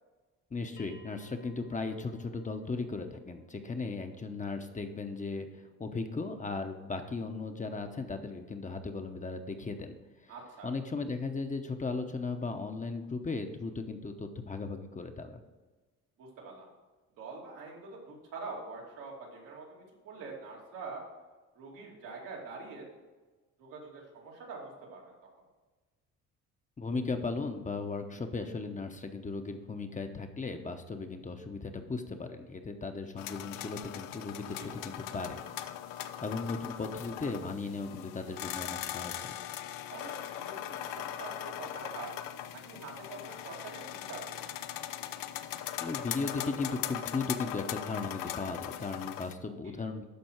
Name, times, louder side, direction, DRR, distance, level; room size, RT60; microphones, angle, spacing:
voice 1, 0.5-9.9 10.2-10.3 10.6-15.4 26.8-35.8 36.2-39.4 45.8-50.0, left 3 dB, 25° left, 6 dB, 0.9 m, -37 dB
Bell, 0.8-5.8, equal, 65° left, 2.5 m, -59 dB
voice 2, 10.3-10.7 16.2-16.7 17.2-21.0 21.5-22.9 23.6-25.1 34.6-34.8 39.9-44.5, right 4 dB, 90° right, -3 dB, 2.7 m, -45 dB
sound 1, 33.2-49.3, left 12 dB, 85° left, 0.6 m, -40 dB
12.0 x 4.4 x 4.5 m, 1.3 s
cardioid pair, 85°, 32 cm